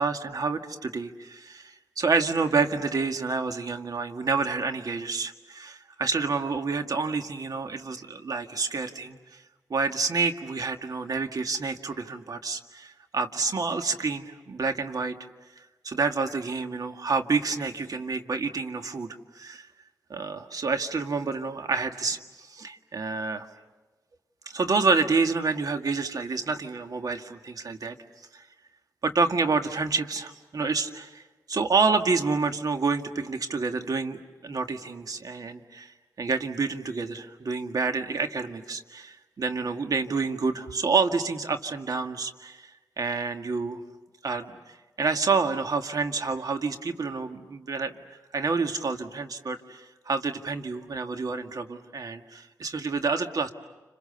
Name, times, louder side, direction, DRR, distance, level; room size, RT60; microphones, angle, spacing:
voice 1, 0.0-9.2 9.7-15.2 15.8-19.1 19.4-19.7 20.1-23.5 24.5-28.0 28.3-28.4 29.0-31.2 31.5-43.8 44.2-44.6 45.0-47.9 48.3-53.5, right 4 dB, 60° right, 6 dB, 1.9 m, -28 dB
30.0 x 27.0 x 6.9 m, 1.2 s
cardioid pair, 45°, 7 cm